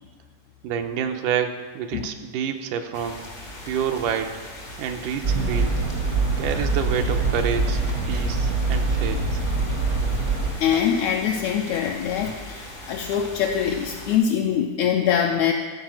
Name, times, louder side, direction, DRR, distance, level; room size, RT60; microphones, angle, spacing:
voice 1, 0.6-3.2 3.7-4.3 4.8-5.8 6.4-7.8 8.1-9.4, right 8 dB, 85° right, 5 dB, 2.2 m, -28 dB
sound 1, 2.9-14.2, left 1 dB, 60° left, 0.5 m, -39 dB
sound 2, 5.2-10.5, right 3 dB, 60° right, 0.9 m, -24 dB
voice 2, 10.6-15.5, left 8 dB, 80° left, 1 dB, 1.7 m, -23 dB
14.0 x 4.8 x 6.0 m, 1.5 s
omnidirectional pair, 3.7 m